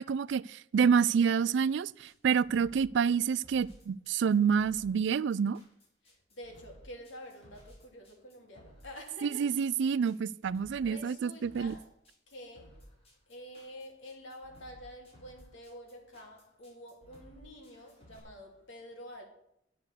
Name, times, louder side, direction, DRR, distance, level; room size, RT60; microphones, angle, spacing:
voice 1, 0.0-5.6 9.2-11.7, right 6 dB, 65° right, 0.3 m, -28 dB
sound 1, 2.1-18.2, equal, 35° left, 4.6 m, -57 dB
voice 2, 6.0-9.6 10.8-11.9 12.3-12.9 13.3-19.2, equal, 80° left, 3.0 m, -48 dB
10.5 x 8.0 x 6.6 m
head